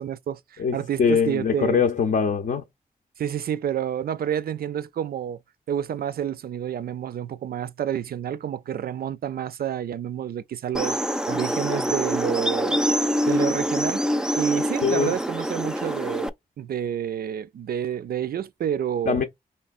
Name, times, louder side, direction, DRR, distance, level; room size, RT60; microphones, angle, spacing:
voice 1, 0.0-1.8 3.2-5.4 5.7-12.8 13.3-14.1 14.4-16.3 16.6-19.2, right 9 dB, 75° right, 0.4 m, -29 dB
voice 2, 0.6-2.6 14.8-15.1 19.1-19.2, left 6 dB, 65° left, 0.6 m, -22 dB
sound 1, 10.7-16.3, equal, 5° right, 0.3 m, -25 dB
4.3 x 3.2 x 2.4 m
wide cardioid pair, 90°, 16 cm